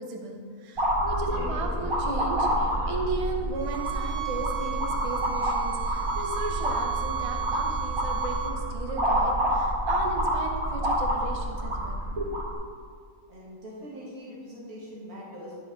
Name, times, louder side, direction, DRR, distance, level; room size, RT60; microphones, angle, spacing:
voice 1, 0.0-12.6, right 2 dB, 50° right, 1 dB, 0.4 m, -35 dB
sound 1, 0.8-12.5, right 1 dB, 35° right, 1.5 m, -28 dB
sound 2, 1.0-4.6, left 4 dB, 90° left, 1.2 m, -43 dB
sound 3, 3.5-8.6, right 14 dB, 90° right, 1.4 m, -34 dB
voice 2, 13.3-15.6, equal, 70° right, -6 dB, 1.9 m, -42 dB
11.5 x 4.8 x 3.8 m, 2.1 s
omnidirectional pair, 1.6 m